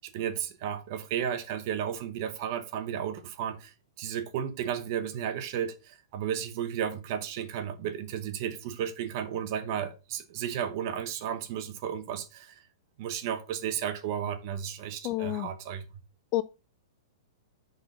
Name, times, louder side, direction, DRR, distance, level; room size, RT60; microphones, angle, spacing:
voice 1, 0.0-12.6 13.0-15.8, right 9 dB, 50° right, 0.9 m, -33 dB
voice 2, 15.0-15.5 16.3-16.4, left 15 dB, 40° left, 0.3 m, -28 dB
5.9 x 4.0 x 5.2 m
hypercardioid pair, 125°, 2 cm